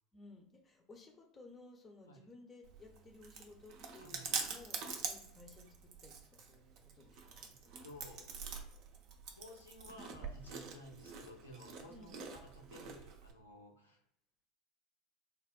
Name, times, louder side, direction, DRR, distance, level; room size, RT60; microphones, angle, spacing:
voice 1, 0.1-7.5 11.9-12.2, left 2 dB, 30° left, 3 dB, 0.7 m, -58 dB
Chewing mastication, 2.6-13.3, right 5 dB, 50° right, 0.4 m, -45 dB
voice 2, 7.8-8.4 9.3-14.0, left 1 dB, 80° left, 1 dB, 0.5 m, -55 dB
3.4 x 2.0 x 2.3 m, 0.73 s
figure-of-eight pair, 75°, 0 cm